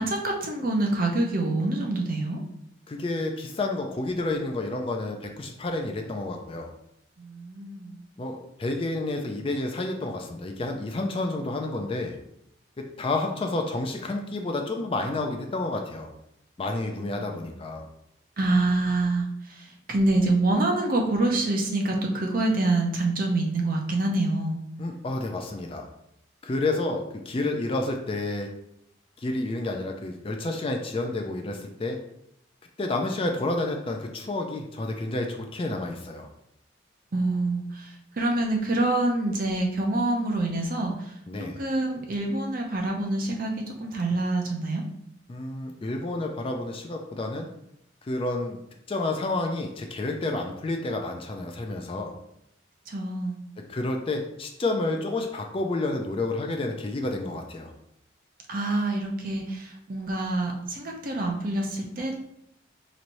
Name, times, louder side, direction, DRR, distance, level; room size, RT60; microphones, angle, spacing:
voice 1, 0.0-2.4 7.2-8.0 17.0-17.5 18.4-24.6 37.1-41.1 41.6-44.8 52.9-53.4 58.5-62.2, right 2 dB, 45° right, 1 dB, 0.6 m, -26 dB
voice 2, 2.9-6.7 8.2-12.2 12.8-16.1 16.6-17.8 24.8-25.9 26.4-28.5 29.2-32.0 32.8-36.3 41.3-41.6 45.3-47.5 48.0-48.6 48.9-52.1 53.7-57.7, left 2 dB, 30° left, 3 dB, 0.3 m, -30 dB
4.2 x 3.1 x 2.6 m, 0.77 s
head